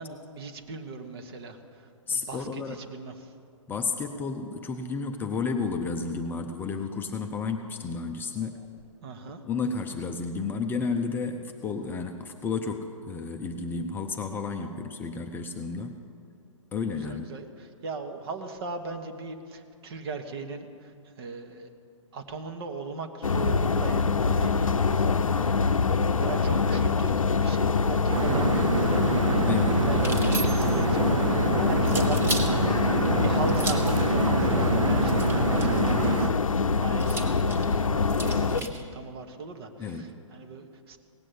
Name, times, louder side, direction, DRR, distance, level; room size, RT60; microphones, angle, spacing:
voice 1, 0.0-3.3 8.5-8.7 9.0-9.4 16.9-21.7 22.1-25.1 25.4-25.8 26.2-32.9 33.2-41.0, right 4 dB, 50° right, 6 dB, 1.4 m, -39 dB
voice 2, 2.1-2.8 3.7-8.6 9.5-16.0 16.7-17.3 29.5-29.8 39.8-40.1, left 4 dB, 10° left, 4 dB, 0.5 m, -32 dB
sound 1, 23.2-38.6, left 5 dB, 85° left, 0.6 m, -24 dB
sound 2, 28.1-36.3, right 5 dB, 70° right, 0.8 m, -27 dB
sound 3, 29.9-30.8 31.8-32.5 33.5-34.0 35.1-35.8 37.0-38.8, right 2 dB, 15° right, 1.2 m, -35 dB
17.5 x 7.5 x 8.3 m, 2.4 s
figure-of-eight pair, 125°, 17 cm